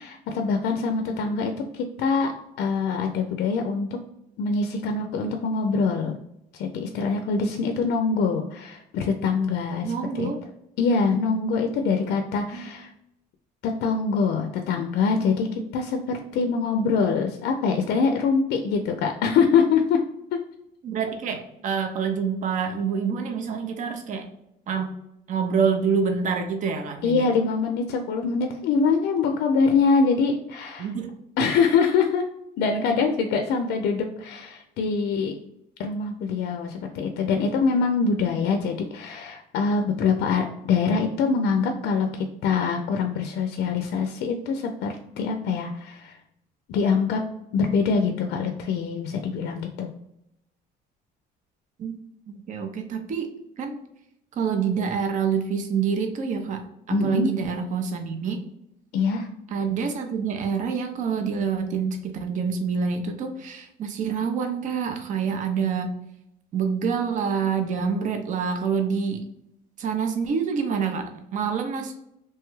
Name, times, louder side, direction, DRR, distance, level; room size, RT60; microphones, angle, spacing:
voice 1, 0.0-3.9 4.4-6.2 6.5-10.3 10.8-12.9 13.6-20.0 20.3-20.4 27.0-30.9 31.4-32.3 32.6-35.3 35.8-46.2 46.7-47.2 47.5-49.9 56.9-57.3 58.9-59.3, left 5 dB, 75° left, 4 dB, 0.4 m, -24 dB
voice 2, 9.8-10.4 12.5-12.7 20.8-24.3 24.7-24.9 25.3-27.3 30.8-31.2 51.8-51.9 52.5-53.8 54.3-58.4 59.5-66.0 66.5-69.2 69.8-71.9, right 6 dB, 50° right, 6 dB, 0.5 m, -27 dB
3.1 x 2.3 x 3.0 m, 0.81 s
cardioid pair, 110°, 17 cm